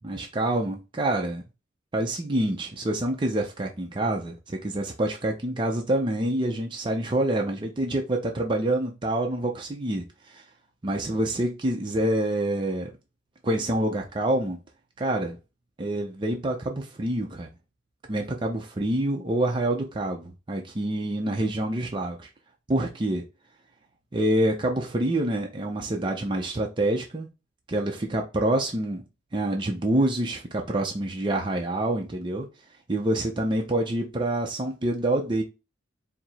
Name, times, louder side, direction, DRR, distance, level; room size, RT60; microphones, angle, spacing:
voice 1, 0.0-1.4 1.9-10.4 10.8-12.9 13.4-14.6 15.0-15.4 15.8-17.5 18.1-22.3 22.7-23.2 24.1-27.3 27.7-29.0 29.3-32.5 32.9-35.4, right 1 dB, 25° right, 0.5 m, -27 dB
4.6 x 2.0 x 4.0 m
head